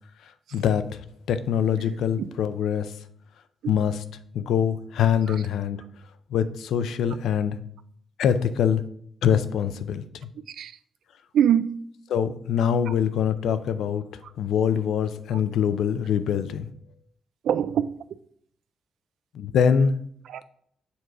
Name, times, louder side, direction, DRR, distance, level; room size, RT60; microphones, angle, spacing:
voice 1, 0.5-1.0 1.3-2.9 3.7-3.9 4.3-5.8 6.3-7.6 8.2-8.8 9.2-10.0 12.1-14.0 14.4-16.7 19.3-19.9, left 8 dB, 90° left, 0.5 m, -24 dB
voice 2, 10.5-10.8 11.3-11.7 12.9-13.0 14.2-14.3 15.3-15.4 16.3-16.4 17.4-17.8 20.2-20.4, right 9 dB, 75° right, 0.4 m, -24 dB
7.1 x 4.7 x 3.8 m
wide cardioid pair, 175°, 0 cm